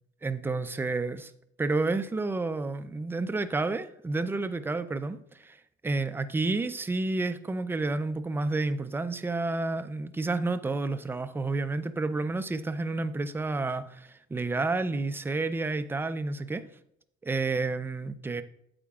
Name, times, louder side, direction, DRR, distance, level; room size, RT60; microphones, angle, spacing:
voice 1, 0.2-1.3 1.6-16.6 17.2-18.4, right 3 dB, 15° right, 12 dB, 0.4 m, -30 dB
8.6 x 8.2 x 2.3 m, 0.74 s
cardioid pair, 110°, 17 cm